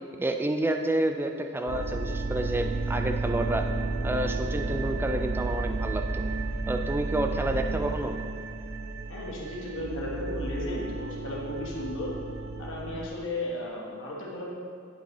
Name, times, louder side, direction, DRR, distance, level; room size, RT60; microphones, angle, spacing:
voice 1, 0.2-3.7 4.0-6.3 6.7-8.2, right 1 dB, 10° right, 5 dB, 0.3 m, -29 dB
sound 1, 1.7-13.1, right 3 dB, 85° right, 0.5 m, -32 dB
voice 2, 9.1-12.1 12.6-14.5, left 1 dB, 65° left, -3 dB, 1.2 m, -35 dB
9.9 x 5.5 x 3.0 m, 2.3 s
head